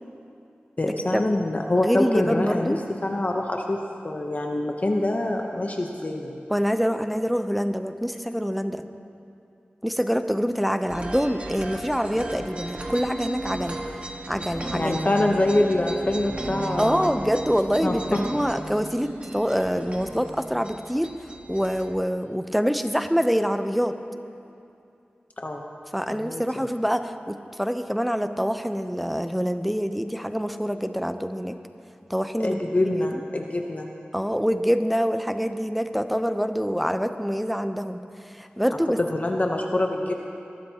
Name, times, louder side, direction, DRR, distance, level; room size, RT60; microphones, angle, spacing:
voice 1, 0.8-6.4 14.7-17.1 17.8-18.2 25.4-25.6 26.1-26.7 32.4-33.9 39.0-40.1, left 1 dB, 40° left, 1 dB, 0.8 m, -25 dB
voice 2, 1.8-2.8 6.5-8.8 9.8-13.8 14.3-15.0 16.8-21.1 21.5-24.0 25.9-31.6 32.1-32.6 32.9-33.2 34.1-38.0 38.3-39.0, equal, ahead, 9 dB, 0.6 m, -25 dB
sound 1, 10.9-21.9, right 1 dB, 35° right, 1.4 m, -35 dB
21.0 x 12.5 x 2.9 m, 2.6 s
wide cardioid pair, 65°, 4 cm